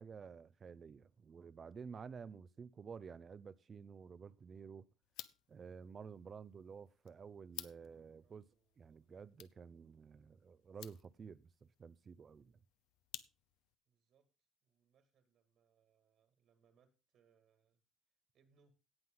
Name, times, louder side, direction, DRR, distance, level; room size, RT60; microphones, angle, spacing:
voice 1, 0.0-4.9 5.5-8.5 8.8-12.5, right 6 dB, 25° right, 0.5 m, -52 dB
sound 1, 5.0-13.8, left 15 dB, 75° left, 0.7 m, -56 dB
voice 2, 7.7-9.5 13.9-14.3 14.6-17.8 18.3-18.7, right 6 dB, 50° right, 2.1 m, -76 dB
17.5 x 6.0 x 3.8 m
cardioid pair, 160°, 0 cm